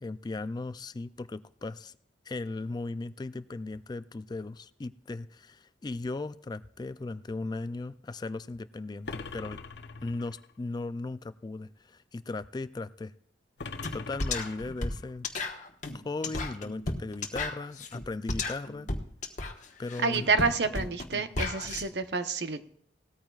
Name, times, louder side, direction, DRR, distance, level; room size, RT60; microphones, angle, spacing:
voice 1, 0.0-2.0 2.3-9.6 10.0-13.1 13.9-15.3 15.9-18.9 19.8-20.3, left 3 dB, 25° left, 14 dB, 0.3 m, -37 dB
sound 1, 9.0-10.5 13.6-15.1, left 4 dB, 70° left, 0.8 m, -42 dB
sound 2, 13.8-13.9 14.2-21.8, left 3 dB, 45° left, 1.3 m, -34 dB
voice 2, 20.0-22.6, right 4 dB, 70° right, 9 dB, 0.9 m, -28 dB
18.0 x 13.5 x 2.4 m, 0.65 s
head